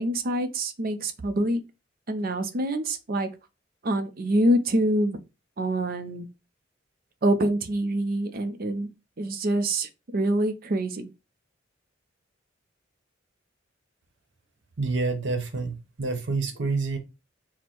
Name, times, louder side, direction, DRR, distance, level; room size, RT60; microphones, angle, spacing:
voice 1, 0.0-1.6 2.1-3.3 3.8-5.2 5.6-6.3 7.2-8.9 9.2-11.1, right 1 dB, 50° right, 0.6 m, -25 dB
voice 2, 14.8-17.0, right 3 dB, 70° right, 0.9 m, -28 dB
4.3 x 2.1 x 4.5 m
head